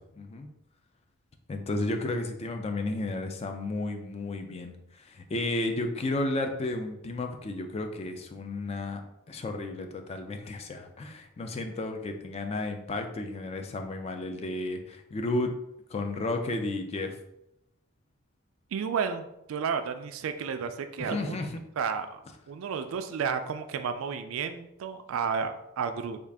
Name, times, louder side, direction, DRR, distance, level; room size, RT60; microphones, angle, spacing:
voice 1, 0.2-0.5 1.5-9.0 9.3-15.6 15.9-17.2 21.0-21.6, left 2 dB, 30° left, 5 dB, 0.3 m, -33 dB
voice 2, 18.7-21.5 21.8-22.2 22.5-26.2, right 6 dB, 60° right, 9 dB, 0.3 m, -32 dB
3.6 x 2.3 x 3.4 m, 0.83 s
head